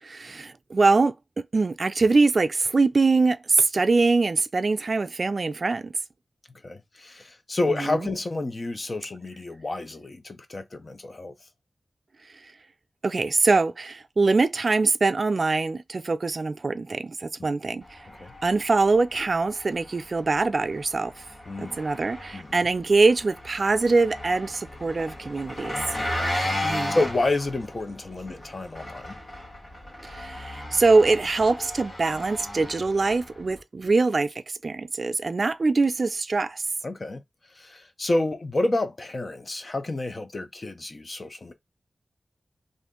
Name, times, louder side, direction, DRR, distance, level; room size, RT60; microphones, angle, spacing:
voice 1, 0.0-5.9 7.8-8.1 13.0-18.0 18.4-21.1 21.6-25.8 26.6-27.0 30.0-36.6, right 3 dB, 60° right, 0.3 m, -23 dB
voice 2, 6.6-11.3 17.4-17.5 18.2-18.3 21.5-21.8 22.3-22.6 26.1-29.2 36.8-37.2 37.5-41.5, left 2 dB, 50° left, 0.7 m, -29 dB
Engine, 17.8-33.6, left 1 dB, 70° left, 1.6 m, -35 dB
2.5 x 2.5 x 3.7 m
cardioid pair, 45°, 0 cm